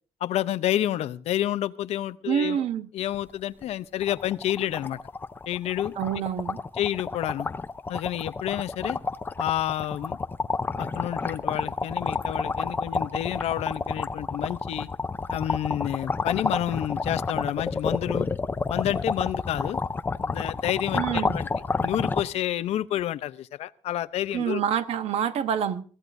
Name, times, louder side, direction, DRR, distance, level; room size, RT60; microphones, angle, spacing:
voice 1, 0.2-2.6 2.9-5.0 5.5-5.9 6.8-7.5 7.9-9.0 9.4-10.2 10.8-14.9 15.3-18.3 18.7-19.8 20.2-21.5 21.8-24.6, left 12 dB, 70° left, 0.7 m, -29 dB
voice 2, 2.3-2.9 6.0-6.6 20.9-21.3 24.3-25.8, right 9 dB, 65° right, 1.1 m, -27 dB
sound 1, 3.1-3.3 3.6-3.7 4.0-22.2, left 4 dB, 20° left, 0.6 m, -30 dB
23.0 x 16.0 x 2.6 m
cardioid pair, 165°, 11 cm